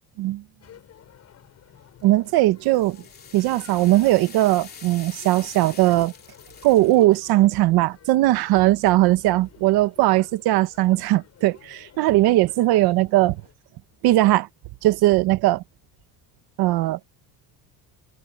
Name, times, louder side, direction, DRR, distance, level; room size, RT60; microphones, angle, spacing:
sound 1, 0.6-13.5, left 10 dB, 40° left, 7.5 m, -52 dB
sound 2, 2.0-7.1, left 6 dB, 25° left, 2.9 m, -45 dB
voice 1, 2.0-3.0 3.3-6.1 6.6-13.4 14.0-14.5 14.8-15.6 16.6-17.0, right 17 dB, 65° right, 1.2 m, -19 dB
cardioid pair, 160°, 40 cm